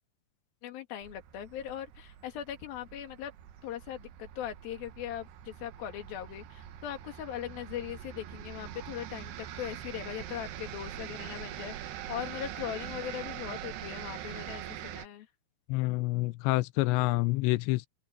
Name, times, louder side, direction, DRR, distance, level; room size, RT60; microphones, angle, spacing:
voice 1, 0.6-3.3 3.6-15.3, left 11 dB, 55° left, 3.2 m, -40 dB
sound 1, 1.0-15.1, right 11 dB, 65° right, 3.0 m, -43 dB
voice 2, 15.7-17.9, left 20 dB, 90° left, 2.5 m, -27 dB
open air
omnidirectional pair, 5.8 m